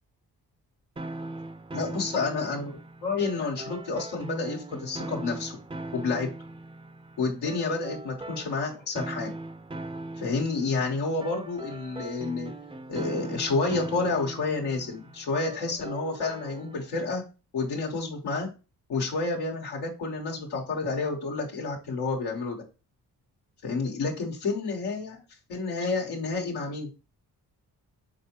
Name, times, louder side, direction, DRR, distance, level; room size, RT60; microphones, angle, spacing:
sound 1, 1.0-16.9, right 2 dB, 15° right, 0.5 m, -40 dB
voice 1, 1.7-5.6 5.9-6.3 7.2-9.3 10.2-12.5 12.9-17.2 17.5-18.5 18.9-22.6 23.6-25.2 25.5-26.9, left 3 dB, 90° left, -1 dB, 1.3 m, -29 dB
4.8 x 3.6 x 2.9 m, 0.30 s
supercardioid pair, 55°, 38 cm